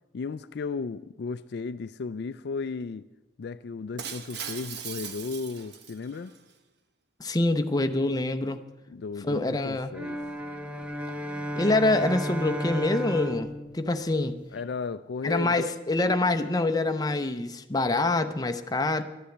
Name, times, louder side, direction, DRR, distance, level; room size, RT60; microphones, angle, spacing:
voice 1, 0.1-3.1 3.4-6.3 8.9-10.2 14.5-15.7, left 4 dB, 60° left, 13 dB, 0.4 m, -35 dB
Shatter, 4.0-6.4, right 7 dB, 65° right, 1.0 m, -39 dB
voice 2, 7.2-8.6 9.2-9.9 11.6-14.4 15.2-19.0, left 2 dB, 20° left, 7 dB, 0.7 m, -25 dB
sound 1, 9.9-14.6, equal, 5° right, 0.9 m, -34 dB
12.5 x 10.0 x 7.9 m, 1.0 s
head